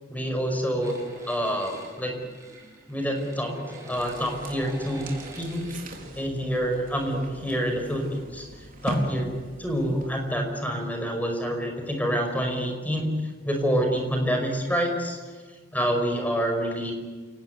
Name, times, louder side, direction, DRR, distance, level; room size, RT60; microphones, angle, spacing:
voice 1, 0.1-1.0 1.3-2.1 2.9-5.1 5.4-5.6 6.1-8.5 8.8-9.3 9.6-13.1 13.4-15.2 15.7-16.9, equal, 10° left, 4 dB, 5.3 m, -27 dB
sound 1, 0.8-6.0, right 2 dB, 15° right, 5.7 m, -44 dB
sound 2, 3.9-10.5, right 1 dB, 45° right, 4.2 m, -38 dB
29.0 x 18.5 x 8.4 m, 1.5 s
head